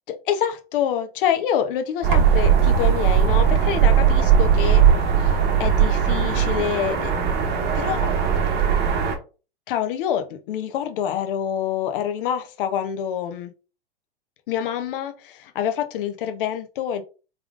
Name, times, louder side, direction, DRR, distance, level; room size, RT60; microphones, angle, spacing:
voice 1, 0.1-5.3 5.6-7.1 7.7-8.1 9.7-13.5 14.5-17.0, left 9 dB, 60° left, 0.8 m, -26 dB
sound 1, 2.0-9.2, right 8 dB, 35° right, 1.0 m, -18 dB
3.6 x 3.5 x 2.4 m
hypercardioid pair, 110°, 30 cm